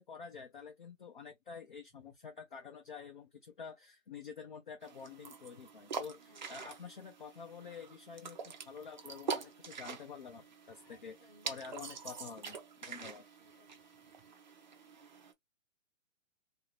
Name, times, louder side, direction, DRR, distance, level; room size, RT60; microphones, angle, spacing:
voice 1, 0.0-11.2 11.4-12.6 12.8-13.2, left 6 dB, 40° left, 0.4 m, -48 dB
sound 1, 4.8-15.3, right 5 dB, 35° right, 0.5 m, -45 dB
voice 2, 6.0-6.7 10.6-11.5 13.0-14.3, equal, 15° left, 0.8 m, -65 dB
2.8 x 2.6 x 2.9 m
hypercardioid pair, 165°, 40 cm